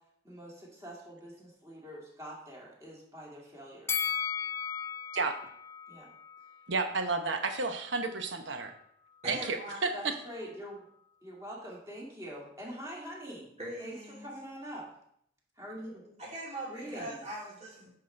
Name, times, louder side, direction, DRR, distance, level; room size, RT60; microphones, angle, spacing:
voice 1, 0.2-4.1 5.9-6.1 9.9-10.8 11.2-13.5 13.8-14.9 15.6-16.2 16.7-17.2, equal, 15° right, -4 dB, 2.2 m, -44 dB
Bell, 3.9-7.1 7.4-7.5, left 7 dB, 15° left, 0.3 m, -36 dB
voice 2, 6.7-8.7 9.3-9.6 9.8-10.1, right 4 dB, 75° right, 6 dB, 0.9 m, -31 dB
voice 3, 9.2-9.8 13.6-14.3 16.2-17.9, right 1 dB, 35° right, -7 dB, 2.9 m, -41 dB
9.6 x 5.7 x 3.3 m, 0.69 s
head